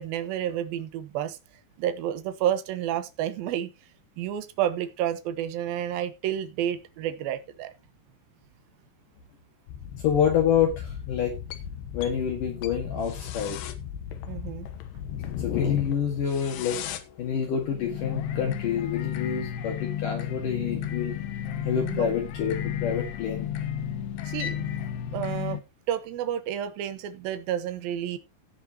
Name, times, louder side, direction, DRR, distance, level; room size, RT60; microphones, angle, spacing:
voice 1, 0.0-1.4 1.8-3.7 4.2-7.7 14.3-14.7 21.8-22.1 24.3-24.7 25.1-25.6 25.9-28.2, right 11 dB, 75° right, 2.6 m, -30 dB
sound 1, 9.7-25.6, left 10 dB, 80° left, 3.1 m, -34 dB
voice 2, 10.0-11.4 11.9-13.6 15.4-21.2 21.6-23.5, left 8 dB, 60° left, 3.1 m, -27 dB
16.5 x 7.4 x 2.9 m
omnidirectional pair, 4.7 m